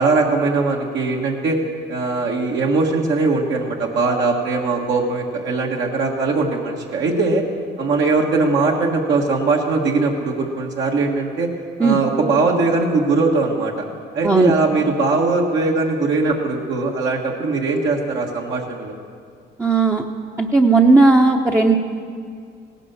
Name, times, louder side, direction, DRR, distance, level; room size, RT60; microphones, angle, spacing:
voice 1, 0.0-1.6 1.9-7.4 7.8-11.5 11.8-13.8 14.1-19.0, right 3 dB, 65° right, -1 dB, 1.7 m, -20 dB
voice 2, 19.6-20.0 20.4-21.8, right 3 dB, 15° right, -1 dB, 0.8 m, -15 dB
17.0 x 10.0 x 7.0 m, 2.2 s
cardioid pair, 95°, 20 cm